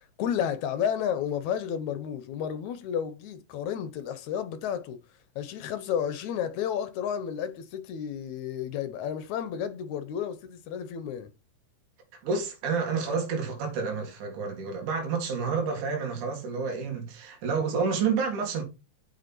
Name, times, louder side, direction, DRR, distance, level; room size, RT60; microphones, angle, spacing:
voice 1, 0.0-5.0 5.4-11.3, left 8 dB, 70° left, 1.9 m, -32 dB
voice 2, 12.2-18.6, right 5 dB, 65° right, 3.6 m, -29 dB
8.0 x 6.4 x 4.4 m
omnidirectional pair, 3.9 m